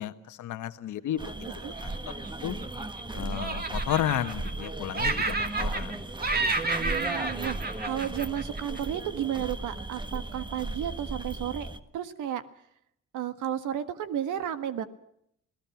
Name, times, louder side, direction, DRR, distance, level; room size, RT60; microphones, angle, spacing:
voice 1, 0.0-1.5 1.8-2.6 3.1-6.0, left 11 dB, 75° left, 9 dB, 1.5 m, -33 dB
sound 1, 1.2-11.8, right 2 dB, 15° right, 1.5 m, -36 dB
Laughter, 1.8-3.0 3.3-4.7 4.9-6.0 6.2-8.8, right 3 dB, 30° right, 2.5 m, -31 dB
voice 2, 6.8-7.6 7.8-11.7 11.9-12.4 13.1-14.8, right 10 dB, 85° right, 11 dB, 1.6 m, -32 dB
28.5 x 18.0 x 6.0 m, 0.75 s
cardioid pair, 90°, 30 cm